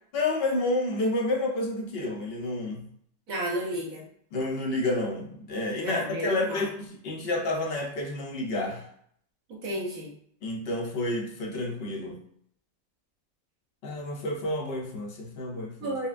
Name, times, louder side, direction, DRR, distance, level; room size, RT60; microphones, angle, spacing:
voice 1, 0.1-2.8 4.3-8.9 10.4-12.2 13.8-15.9, left 2 dB, 55° left, 0 dB, 0.7 m, -30 dB
voice 2, 3.3-4.1 5.8-6.7 9.5-10.1 15.8-16.1, right 1 dB, 65° right, -3 dB, 1.3 m, -32 dB
5.4 x 2.1 x 2.5 m, 0.65 s
omnidirectional pair, 1.6 m